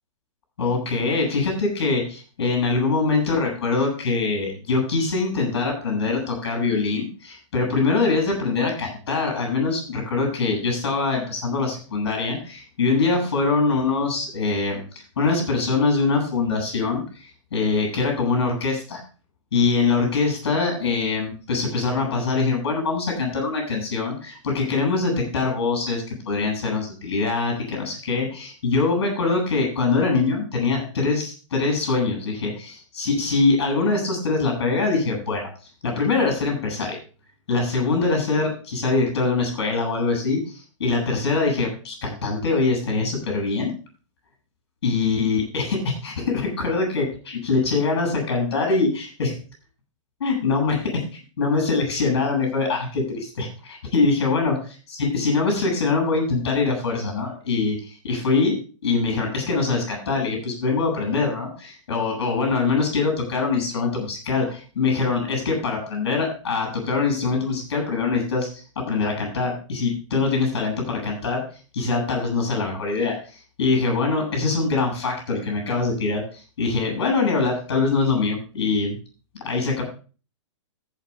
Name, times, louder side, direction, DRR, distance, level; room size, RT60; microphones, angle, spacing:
voice 1, 0.6-14.8 15.2-17.0 17.5-19.0 19.5-35.5 35.8-37.0 37.5-43.7 44.8-49.4 50.2-51.0 51.4-54.5 55.0-58.5 58.8-71.4 71.7-73.2 73.6-76.2 76.6-78.9 79.4-79.8, left 4 dB, 55° left, 2 dB, 7.3 m, -23 dB
14.0 x 6.2 x 5.4 m, 0.37 s
figure-of-eight pair, 110°, 16 cm